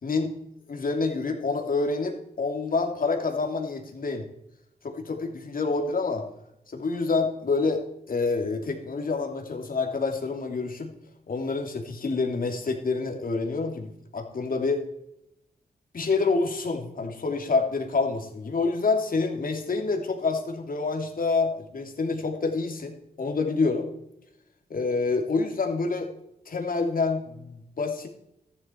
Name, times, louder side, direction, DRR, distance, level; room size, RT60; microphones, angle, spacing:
voice 1, 0.0-0.4 0.7-4.3 4.8-6.2 6.7-10.9 11.3-14.8 15.9-23.9 24.7-26.1 26.5-28.1, left 4 dB, 60° left, 4 dB, 2.8 m, -27 dB
14.0 x 11.0 x 4.6 m, 0.81 s
cardioid pair, 85°, 17 cm